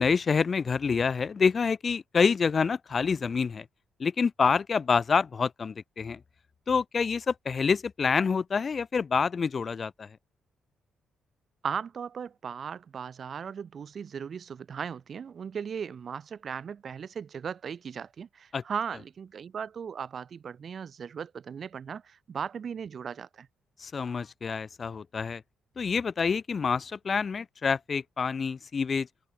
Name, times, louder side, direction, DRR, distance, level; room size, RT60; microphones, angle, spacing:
voice 1, 0.0-3.7 4.0-6.2 6.7-10.2 18.5-18.6 23.8-25.4 25.8-29.1, left 5 dB, 40° left, 7.6 m, -27 dB
voice 2, 11.6-23.5, right 7 dB, 50° right, 7.5 m, -37 dB
cardioid pair, 90°, 0 cm